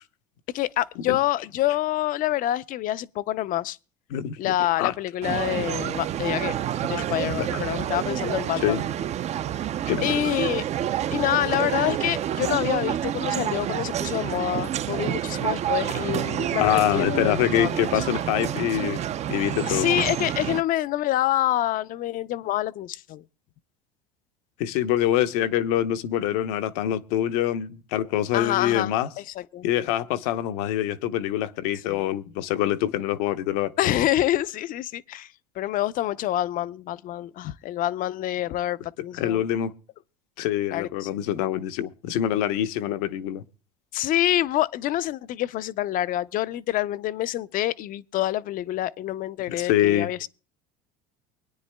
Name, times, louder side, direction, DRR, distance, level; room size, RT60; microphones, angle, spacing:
voice 1, 0.5-3.8 4.4-6.6 6.9-8.8 10.0-10.6 11.1-17.9 19.7-23.2 28.3-29.6 31.9-32.1 33.8-39.4 40.7-41.1 43.9-50.3, left 13 dB, 45° left, 0.5 m, -27 dB
voice 2, 4.1-4.9 6.8-6.9 7.2-7.6 8.6-8.8 9.9-10.1 16.6-19.0 19.3-19.9 24.6-29.1 29.6-33.7 39.2-39.7 40.4-43.4 49.5-50.1, left 11 dB, 70° left, 0.8 m, -25 dB
sound 1, 5.2-20.6, right 11 dB, 35° right, 0.4 m, -28 dB
24.0 x 9.6 x 2.2 m
hypercardioid pair, 90°, 20 cm